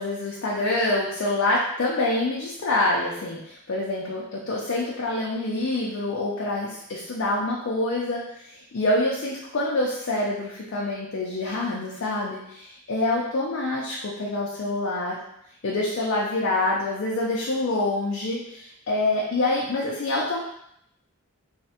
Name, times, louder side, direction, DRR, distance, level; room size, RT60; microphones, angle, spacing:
voice 1, 0.0-15.2 15.6-20.4, left 2 dB, 55° left, -4 dB, 0.4 m, -26 dB
3.2 x 2.0 x 2.8 m, 0.76 s
head